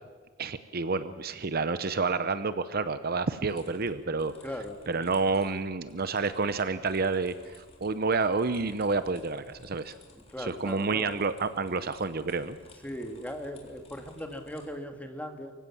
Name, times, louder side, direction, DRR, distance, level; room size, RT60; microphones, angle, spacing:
voice 1, 0.4-4.3 4.9-9.9 10.4-12.6, right 4 dB, 50° right, 12 dB, 0.8 m, -29 dB
sound 1, 3.5-14.7, left 2 dB, 30° left, 3.7 m, -56 dB
voice 2, 4.4-4.8 10.1-11.2 12.8-15.5, equal, 10° left, 4 dB, 1.8 m, -39 dB
24.0 x 16.0 x 7.2 m, 1.4 s
head